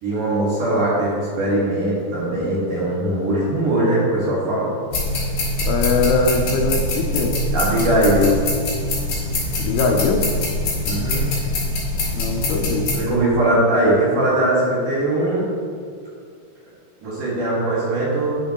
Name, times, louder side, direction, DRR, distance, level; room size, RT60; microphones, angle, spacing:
voice 1, 0.0-4.7 7.5-8.3 10.8-11.2 12.9-15.5 17.0-18.4, right 1 dB, 55° right, -7 dB, 2.7 m, -20 dB
sound 1, 4.9-13.0, left 1 dB, 50° left, 2.7 m, -23 dB
voice 2, 5.6-7.4 9.6-10.3 12.1-13.0, left 4 dB, 85° left, 2 dB, 2.2 m, -21 dB
9.8 x 7.3 x 2.9 m, 2.2 s
omnidirectional pair, 5.4 m